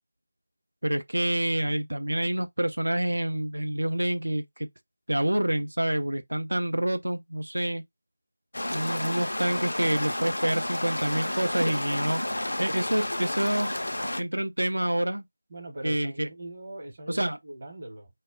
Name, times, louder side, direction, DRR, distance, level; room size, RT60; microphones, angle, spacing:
voice 1, 0.8-4.7 5.1-7.8 8.7-12.2 12.6-13.7 14.2-15.2 15.8-16.3 17.1-17.4, right 1 dB, 70° right, 0.4 m, -27 dB
sound 1, 8.5-14.2, left 1 dB, 60° left, 0.4 m, -31 dB
voice 2, 15.5-18.1, right 2 dB, 35° right, 0.8 m, -41 dB
2.1 x 2.0 x 3.5 m
figure-of-eight pair, 165°, 0 cm